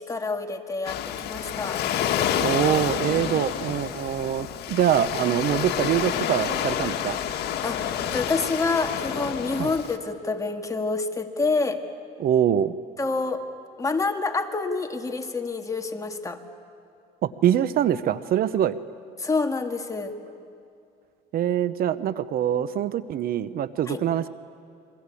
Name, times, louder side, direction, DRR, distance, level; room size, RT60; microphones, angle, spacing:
voice 1, 0.0-1.8 7.6-7.8 8.1-11.8 13.0-13.4 13.8-16.4 19.2-20.2 23.9-24.0, left 3 dB, 20° left, 5 dB, 1.9 m, -27 dB
Waves surf, 0.8-10.0, left 9 dB, 75° left, 1.7 m, -28 dB
voice 2, 2.4-7.2 9.6-9.7 12.2-12.7 17.2-18.8 21.3-24.3, right 10 dB, 60° right, 15 dB, 0.9 m, -24 dB
28.5 x 23.0 x 8.4 m, 2.6 s
cardioid pair, 110°, 17 cm